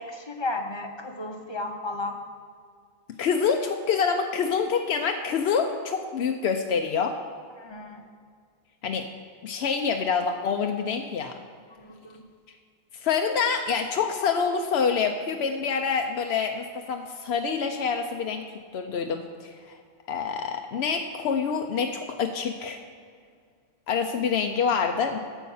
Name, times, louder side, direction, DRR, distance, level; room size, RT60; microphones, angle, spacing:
voice 1, 0.0-2.2 7.6-8.0 11.7-12.2, left 2 dB, 30° left, 4 dB, 0.8 m, -34 dB
voice 2, 3.2-7.2 8.8-9.1 9.4-11.4 12.9-18.5 18.7-19.8 20.1-22.8 23.9-25.2, left 6 dB, 85° left, 4 dB, 0.9 m, -26 dB
9.2 x 7.0 x 5.5 m, 2.1 s
omnidirectional pair, 1.1 m